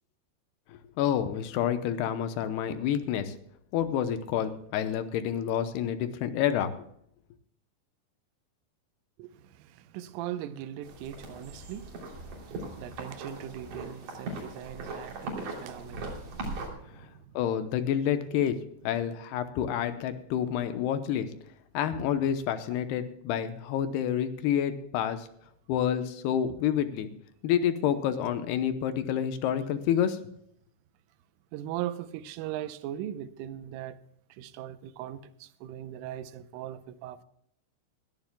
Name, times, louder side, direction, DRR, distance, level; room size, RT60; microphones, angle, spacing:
voice 1, 0.7-3.3 3.7-6.7 17.3-18.6 18.8-21.3 21.7-25.3 25.7-27.1 27.4-30.2, left 9 dB, 75° left, 2.4 m, -28 dB
voice 2, 9.2-12.0 12.3-17.2 31.5-34.0 34.4-37.3, right 11 dB, 85° right, 3.4 m, -40 dB
sound 1, 10.8-16.7, right 2 dB, 45° right, 4.3 m, -39 dB
21.0 x 14.5 x 2.3 m
omnidirectional pair, 5.6 m